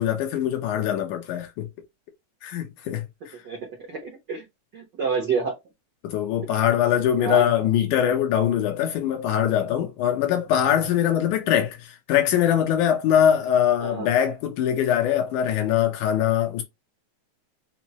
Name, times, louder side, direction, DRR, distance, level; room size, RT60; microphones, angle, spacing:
voice 1, 0.0-1.7 2.4-3.3 6.0-16.6, left 10 dB, 90° left, 2.4 m, -22 dB
voice 2, 3.9-4.4 4.7-5.6 7.2-7.5 13.8-14.1, right 5 dB, 75° right, 0.9 m, -28 dB
5.8 x 2.0 x 2.9 m
omnidirectional pair, 3.4 m